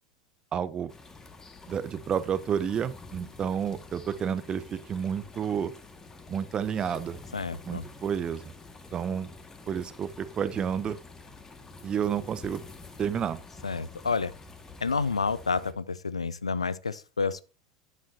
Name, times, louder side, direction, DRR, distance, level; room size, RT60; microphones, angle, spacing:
voice 1, 0.5-0.9 1.7-5.7 6.3-7.2 7.7-8.5 8.9-9.3 9.7-11.0 11.8-12.6 13.0-13.4, right 8 dB, 30° right, 0.9 m, -30 dB
sound 1, 0.9-15.7, left 3 dB, 15° left, 1.8 m, -48 dB
voice 2, 7.3-7.8 13.6-14.3 14.8-17.4, left 4 dB, 80° left, 0.6 m, -29 dB
12.0 x 10.0 x 2.8 m
figure-of-eight pair, 80°, 3 cm